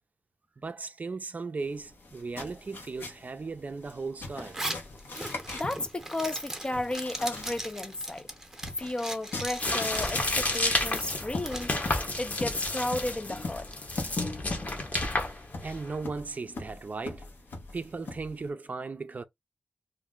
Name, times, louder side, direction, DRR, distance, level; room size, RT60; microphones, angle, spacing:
voice 1, 0.6-4.7 14.5-17.3 17.7-19.2, right 4 dB, 50° right, 0.4 m, -37 dB
sound 1, 1.6-18.5, left 3 dB, 80° left, 0.9 m, -42 dB
Zipper (clothing), 4.4-11.7, right 1 dB, 15° right, 0.7 m, -39 dB
voice 2, 5.5-8.3 8.8-13.7, left 1 dB, 25° left, 0.4 m, -33 dB
sound 2, 9.6-16.0, left 2 dB, 45° left, 0.9 m, -31 dB
2.6 x 2.1 x 3.7 m
wide cardioid pair, 75°, 4 cm